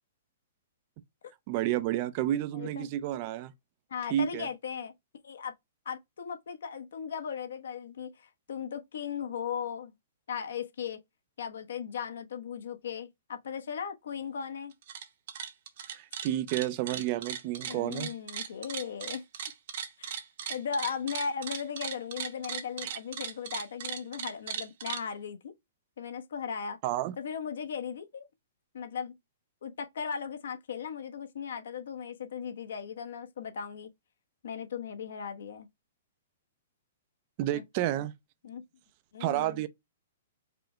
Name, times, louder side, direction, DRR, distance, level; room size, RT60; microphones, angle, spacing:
voice 1, 1.5-3.5 4.1-4.5 15.9-18.1 22.8-23.0 26.8-27.1 37.4-38.1 39.2-39.7, right 13 dB, 30° right, 0.4 m, -30 dB
voice 2, 2.5-2.9 3.9-4.9 5.2-5.5 5.8-9.9 10.3-11.0 11.4-14.7 17.7-19.2 20.0-20.1 20.5-25.5 26.0-26.8 27.2-28.3 28.7-29.1 29.6-33.9 34.4-35.7 37.5-38.0 38.4-38.6 39.1-39.6, left 7 dB, 75° left, 1.0 m, -37 dB
sound 1, 14.7-15.0 15.3-25.0, right 8 dB, 50° right, 0.9 m, -37 dB
4.9 x 2.2 x 4.7 m
hypercardioid pair, 170°, 0 cm